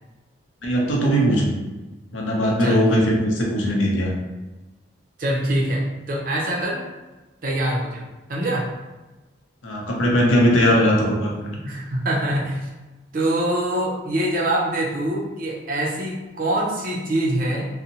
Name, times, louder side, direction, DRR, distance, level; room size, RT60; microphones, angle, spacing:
voice 1, 0.6-1.5 2.1-4.1 9.6-11.5, equal, 90° left, -2 dB, 0.6 m, -19 dB
voice 2, 2.6-3.0 5.2-6.8 7.4-8.0 8.3-8.7 11.5-12.7 13.1-17.7, right 1 dB, 45° right, -3 dB, 0.5 m, -24 dB
2.6 x 2.0 x 2.8 m, 1.1 s
head